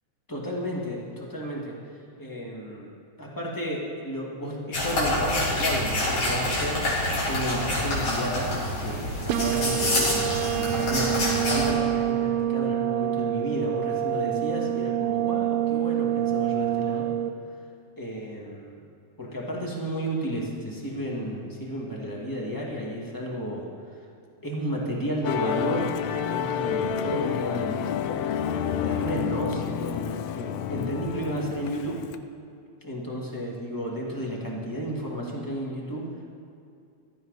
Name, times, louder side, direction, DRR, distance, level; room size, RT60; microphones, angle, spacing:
voice 1, 0.3-1.7 2.2-2.9 3.2-6.8 7.2-8.5 8.8-17.1 18.0-18.8 19.2-23.7 24.4-25.9 26.3-28.0 28.5-32.0 32.8-36.2, equal, 10° left, -3 dB, 1.6 m, -32 dB
sound 1, 4.7-11.7, left 1 dB, 65° left, 4.6 m, -27 dB
sound 2, 9.3-17.3, right 12 dB, 75° right, 1.9 m, -26 dB
Musical instrument, 25.2-32.2, left 8 dB, 85° left, 1.4 m, -29 dB
16.0 x 13.0 x 4.1 m, 2.4 s
omnidirectional pair, 3.4 m